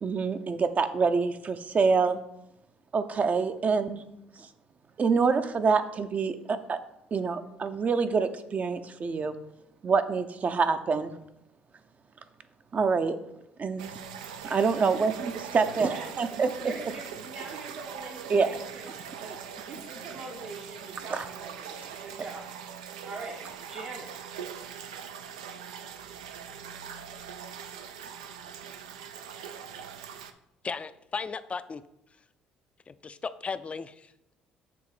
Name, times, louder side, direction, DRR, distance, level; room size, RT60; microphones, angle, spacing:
voice 1, 0.0-2.2 2.9-4.0 5.0-6.8 7.1-9.4 9.8-11.1 12.7-13.2 13.6-13.9 14.4-16.7 18.3-18.5 21.1-21.2, right 5 dB, 40° right, 10 dB, 0.6 m, -26 dB
sound 1, 13.8-30.3, right 8 dB, 90° right, 0.4 m, -42 dB
voice 2, 16.6-22.4 22.8-23.4 23.7-24.3, right 3 dB, 65° right, -2 dB, 1.1 m, -43 dB
voice 3, 30.6-31.8 32.9-34.1, left 5 dB, 30° left, 14 dB, 0.4 m, -36 dB
6.9 x 3.1 x 4.9 m, 0.83 s
hypercardioid pair, 60°, 4 cm